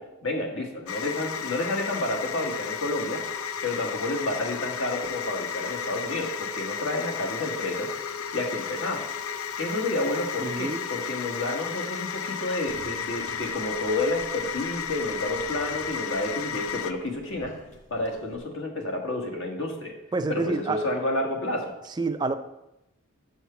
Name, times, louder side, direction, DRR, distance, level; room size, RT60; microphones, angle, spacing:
voice 1, 0.0-3.2 3.6-7.9 8.3-9.0 9.6-17.5 17.9-19.9 20.3-21.7, left 2 dB, 70° left, 1 dB, 1.5 m, -30 dB
sound 1, 0.9-16.9, left 7 dB, 90° left, 0.5 m, -33 dB
voice 2, 10.4-10.9 20.1-21.0 22.0-22.4, right 3 dB, 20° right, 8 dB, 0.4 m, -28 dB
sound 2, 12.7-18.4, left 1 dB, 35° left, 1.2 m, -49 dB
6.7 x 4.6 x 6.8 m, 0.91 s
head